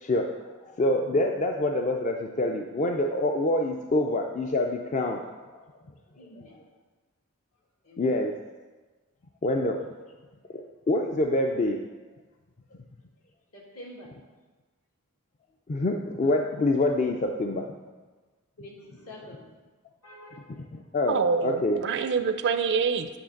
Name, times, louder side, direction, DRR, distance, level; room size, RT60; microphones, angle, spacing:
voice 1, 0.0-5.3 6.4-6.5 8.0-8.3 9.4-9.8 10.5-11.8 15.7-17.7 20.5-21.8, left 1 dB, 35° left, 2 dB, 0.4 m, -26 dB
voice 2, 6.2-6.6 7.8-8.1 13.5-14.1 18.6-19.5 20.0-20.4, left 1 dB, 70° left, -2 dB, 1.7 m, -46 dB
voice 3, 21.1-23.1, right 5 dB, 50° right, 10 dB, 0.4 m, -26 dB
8.6 x 3.2 x 6.4 m, 1.3 s
head